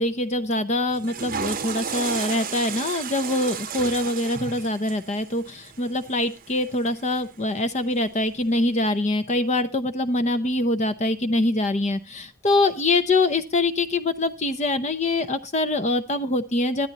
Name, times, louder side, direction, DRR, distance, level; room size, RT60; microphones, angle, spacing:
voice 1, 0.0-16.9, left 2 dB, 30° left, 9 dB, 0.7 m, -24 dB
Water / Toilet flush, 0.9-7.2, right 6 dB, 40° right, 0.8 m, -33 dB
13.5 x 10.5 x 4.0 m, 0.29 s
head